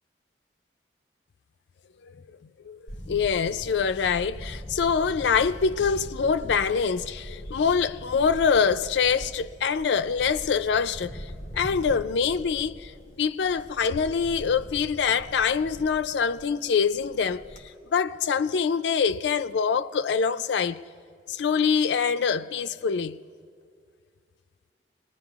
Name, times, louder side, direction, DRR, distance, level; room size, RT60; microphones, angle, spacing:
Camera, 2.9-17.6, equal, 35° left, 2.1 m, -42 dB
voice 1, 3.1-12.9 13.2-17.4 17.9-20.8 21.3-23.2, left 6 dB, 75° left, 0.4 m, -25 dB
25.0 x 20.0 x 2.4 m
head